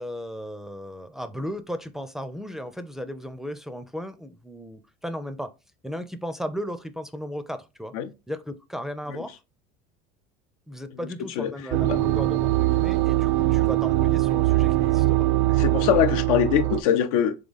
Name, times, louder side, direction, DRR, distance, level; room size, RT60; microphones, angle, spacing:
voice 1, 0.0-5.5 5.8-7.9 8.3-9.4 10.7-15.3 16.4-16.8, equal, ahead, 0.4 m, -35 dB
sound 1, 11.7-16.8, right 17 dB, 70° right, 0.4 m, -22 dB
voice 2, 15.6-17.4, left 9 dB, 90° left, 0.6 m, -22 dB
3.7 x 3.2 x 3.9 m
supercardioid pair, 125°, 18 cm